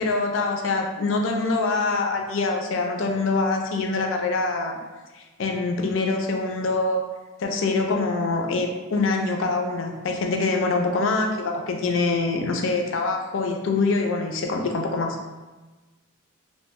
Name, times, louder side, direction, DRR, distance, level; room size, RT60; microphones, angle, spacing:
voice 1, 0.0-4.8 5.1-7.0 7.4-15.2, left 3 dB, 70° left, 3 dB, 0.4 m, -24 dB
2.7 x 2.1 x 3.5 m, 1.2 s
head